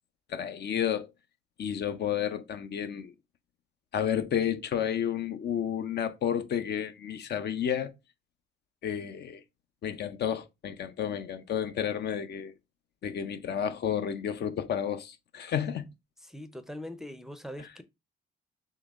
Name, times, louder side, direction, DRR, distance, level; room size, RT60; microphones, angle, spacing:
voice 1, 0.3-1.1 1.6-3.1 3.9-7.9 8.8-9.4 9.8-12.5 13.0-15.9 17.6-17.7, left 9 dB, 60° left, 0.6 m, -31 dB
voice 2, 16.2-17.8, left 1 dB, ahead, 0.5 m, -42 dB
3.9 x 3.1 x 3.5 m
cardioid pair, 90°, 20 cm